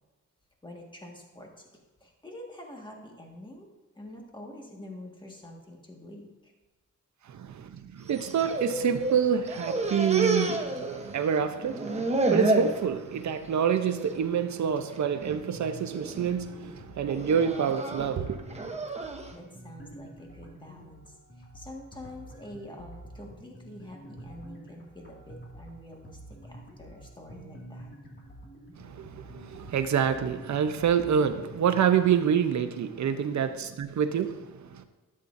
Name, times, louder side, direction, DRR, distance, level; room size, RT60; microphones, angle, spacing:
voice 1, 0.6-1.5 2.0-3.7 4.0-6.5 19.3-27.9, left 1 dB, 15° left, 0 dB, 1.7 m, -46 dB
voice 2, 7.3-18.4 28.8-34.8, right 7 dB, 65° right, 9 dB, 0.8 m, -27 dB
sound 1, 8.1-9.2 9.5-11.3 11.6-12.8 13.3-13.6 14.0-14.1 15.0-15.4 15.9-16.3 17.1-19.3, right 2 dB, 20° right, 0.9 m, -30 dB
sound 2, 15.2-32.2, right 1 dB, 40° left, 2.2 m, -48 dB
12.5 x 8.5 x 2.6 m, 1.2 s
wide cardioid pair, 115°, 31 cm